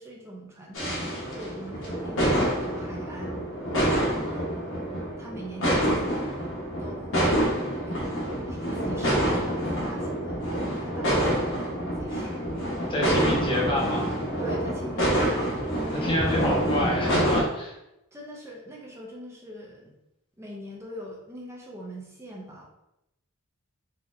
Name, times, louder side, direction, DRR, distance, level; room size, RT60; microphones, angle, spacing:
voice 1, 0.0-3.4 3.8-4.7 5.2-6.3 6.8-7.5 7.9-8.1 8.5-10.4 10.7-13.4 14.4-16.4 18.1-20.0 20.4-22.7, equal, 10° right, -2 dB, 0.5 m, -42 dB
sound 1, 0.7-17.4, equal, 60° left, 1.0 m, -27 dB
voice 2, 12.9-14.2 16.0-17.7, equal, 25° left, -3 dB, 0.9 m, -27 dB
4.0 x 2.8 x 2.5 m, 0.86 s
head